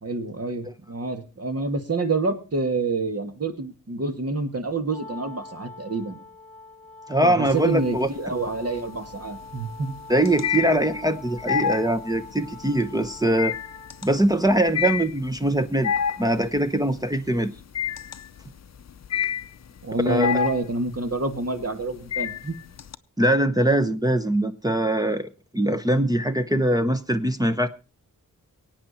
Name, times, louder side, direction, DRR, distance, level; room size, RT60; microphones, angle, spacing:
voice 1, 0.0-6.2 7.2-9.9 19.8-22.6, right 3 dB, 50° right, 2.2 m, -27 dB
Wind instrument woodwind instrument, 4.9-14.1, left 3 dB, 5° left, 2.5 m, -43 dB
voice 2, 7.1-8.1 10.1-13.6 14.0-15.9 16.2-17.5 20.1-20.3 23.2-27.7, right 1 dB, 10° right, 0.8 m, -22 dB
sound 1, 7.5-8.1 8.5-22.9, left 8 dB, 55° left, 0.6 m, -29 dB
23.0 x 9.0 x 4.3 m
wide cardioid pair, 80°, 32 cm